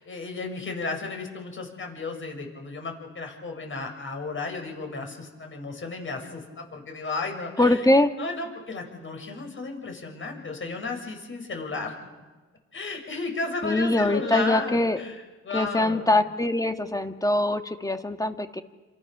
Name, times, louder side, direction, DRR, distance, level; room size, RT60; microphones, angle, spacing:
voice 1, 0.0-7.8 8.2-11.9 12.7-16.1, left 3 dB, 40° left, 3 dB, 7.0 m, -34 dB
voice 2, 7.6-8.1 13.6-15.0 15.5-18.6, left 2 dB, 10° left, 7 dB, 2.0 m, -23 dB
29.5 x 27.5 x 7.0 m, 1.3 s
cardioid pair, 90°, 30 cm